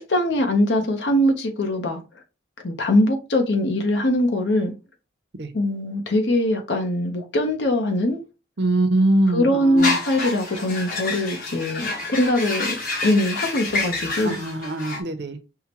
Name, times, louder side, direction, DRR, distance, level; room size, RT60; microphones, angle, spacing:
voice 1, 0.1-2.0 2.6-4.7 5.5-8.2 9.3-12.8 13.0-14.4, left 1 dB, 70° left, 0.9 m, -22 dB
voice 2, 8.6-10.0 14.2-15.4, right 1 dB, 60° right, 0.6 m, -22 dB
sound 1, 9.8-15.0, left 2 dB, 45° left, 1.2 m, -28 dB
5.7 x 2.2 x 2.9 m
head